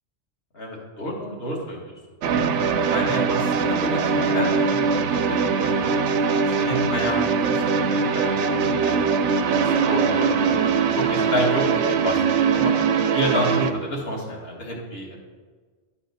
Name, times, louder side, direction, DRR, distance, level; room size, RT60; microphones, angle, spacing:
voice 1, 0.5-1.9 2.8-6.0 6.5-10.6 10.9-11.6 11.9-12.2 12.5-12.7 13.1-15.2, equal, 60° left, -3 dB, 1.8 m, -30 dB
sound 1, 2.2-13.7, right 5 dB, 85° right, 0.9 m, -21 dB
11.5 x 4.1 x 4.0 m, 1.5 s
omnidirectional pair, 1.2 m